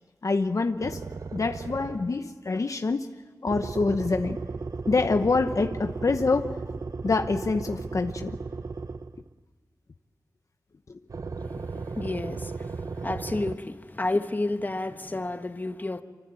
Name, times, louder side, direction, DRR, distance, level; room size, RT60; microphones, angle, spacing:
voice 1, 0.2-1.0 1.3-3.1 3.4-4.4 4.9-6.5 7.0-8.4 10.9-11.0, left 3 dB, 60° left, 7 dB, 0.9 m, -26 dB
sound 1, 0.8-2.3 3.5-9.3 11.1-13.6, right 4 dB, 65° right, 0.8 m, -35 dB
voice 2, 11.4-16.0, left 2 dB, 30° left, 8 dB, 1.3 m, -31 dB
25.5 x 24.5 x 9.1 m, 1.4 s
wide cardioid pair, 70°, 6 cm